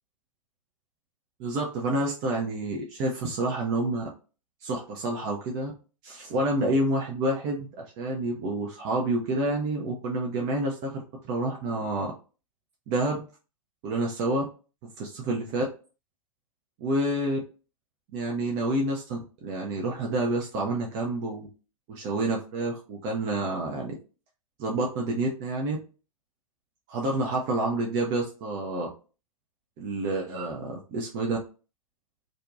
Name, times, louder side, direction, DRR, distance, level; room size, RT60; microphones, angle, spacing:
voice 1, 1.4-4.1 4.6-5.7 6.0-12.1 12.9-13.2 13.8-14.4 14.8-15.7 16.8-17.4 18.1-21.5 21.9-23.9 24.6-25.8 26.9-28.9 29.8-31.4, right 2 dB, 25° right, -1 dB, 0.4 m, -28 dB
2.5 x 2.1 x 2.4 m, 0.35 s
figure-of-eight pair, 105°, 18 cm